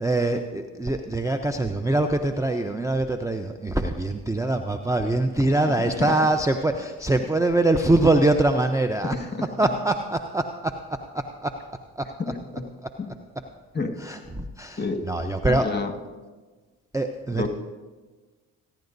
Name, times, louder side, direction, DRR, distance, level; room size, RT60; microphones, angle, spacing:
voice 1, 0.0-9.2 9.6-11.6 12.0-12.1 12.8-12.9 14.0-15.7 16.9-17.5, right 2 dB, 5° right, 7 dB, 0.7 m, -24 dB
voice 2, 5.8-6.2 9.0-9.4 12.2-12.7 13.0-13.1 13.7-14.0 14.8-15.0 15.5-15.9 17.3-17.5, left 4 dB, 25° left, 5 dB, 1.9 m, -29 dB
27.5 x 10.5 x 2.7 m, 1.3 s
hypercardioid pair, 50°, 43 cm